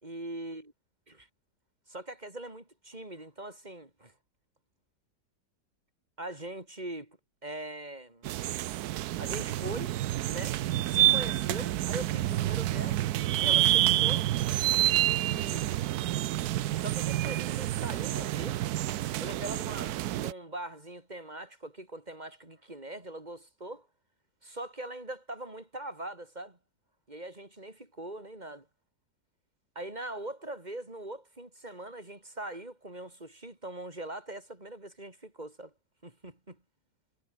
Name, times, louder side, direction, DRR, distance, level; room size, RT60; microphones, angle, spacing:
voice 1, 0.0-0.7 1.1-1.3 1.9-4.1 6.2-7.2 7.4-8.3 9.2-9.9 10.2-10.6 10.9-13.0 13.4-14.3 15.0-15.7 16.8-18.7 19.2-23.9 24.4-26.6 27.1-28.7 29.7-35.7 36.0-36.6, right 1 dB, 25° right, 4.4 m, -41 dB
sound 1, 8.2-20.3, right 14 dB, 70° right, 1.1 m, -28 dB
omnidirectional pair, 1.9 m